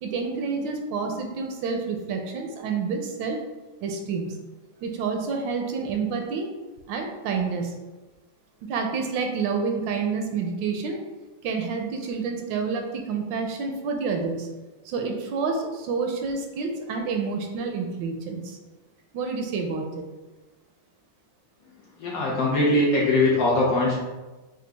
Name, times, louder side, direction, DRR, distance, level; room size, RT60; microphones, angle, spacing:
voice 1, 0.0-3.4 3.8-4.4 4.8-6.5 6.9-7.7 8.7-11.0 11.4-14.5 14.8-18.6 19.1-20.0, right 5 dB, 80° right, 3 dB, 1.3 m, -28 dB
voice 2, 22.0-24.0, left 2 dB, 60° left, -4 dB, 1.0 m, -21 dB
5.0 x 2.3 x 3.3 m, 1.2 s
omnidirectional pair, 2.1 m